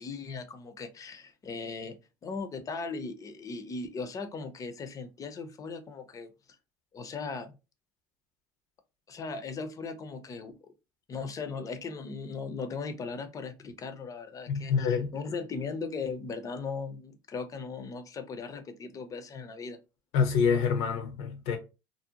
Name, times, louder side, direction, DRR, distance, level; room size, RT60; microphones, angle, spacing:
voice 1, 0.0-2.0 2.2-6.3 6.9-7.6 9.1-10.7 11.1-19.8, left 4 dB, 30° left, 0.5 m, -38 dB
voice 2, 14.5-15.1 20.1-21.6, left 6 dB, 70° left, 0.7 m, -26 dB
2.6 x 2.0 x 2.8 m
supercardioid pair, 85°, 11 cm